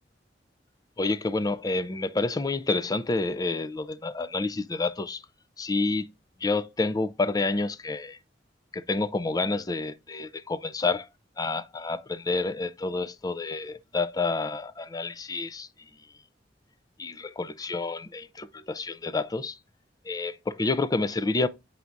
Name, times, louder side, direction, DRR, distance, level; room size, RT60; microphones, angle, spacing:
voice 1, 1.0-5.2 5.6-6.1 6.4-8.2 8.7-11.1 11.4-15.7 17.0-19.6 20.1-21.5, left 3 dB, 20° left, 0.4 m, -29 dB
8.3 x 4.5 x 2.6 m
head